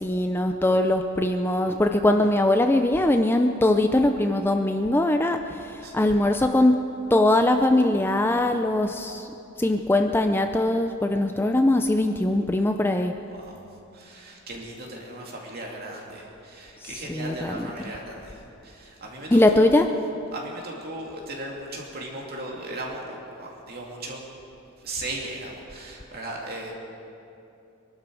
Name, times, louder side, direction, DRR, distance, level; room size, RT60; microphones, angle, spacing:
voice 1, 0.0-6.8 7.1-9.2 9.6-13.1 17.1-17.6 19.3-19.9, left 1 dB, 10° left, 5 dB, 0.4 m, -21 dB
voice 2, 13.3-13.7 13.9-19.7 20.3-24.2 24.8-26.7, right 1 dB, 45° right, -1 dB, 2.6 m, -37 dB
23.5 x 12.0 x 4.8 m, 2.8 s
head